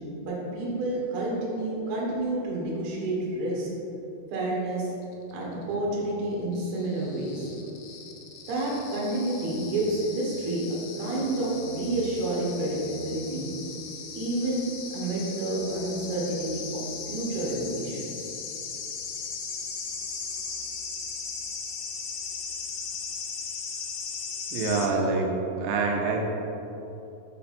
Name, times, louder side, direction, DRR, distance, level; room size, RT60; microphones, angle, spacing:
voice 1, 0.2-3.7 4.3-4.9 5.3-7.5 8.5-13.5 14.1-14.7 14.9-18.3, right 1 dB, 60° right, -5 dB, 2.1 m, -29 dB
sound 1, 5.1-24.9, left 5 dB, 80° left, 2.3 m, -38 dB
voice 2, 24.5-25.3 25.6-26.2, right 4 dB, 85° right, 1 dB, 2.9 m, -25 dB
5.6 x 5.1 x 4.3 m, 2.9 s
omnidirectional pair, 4.9 m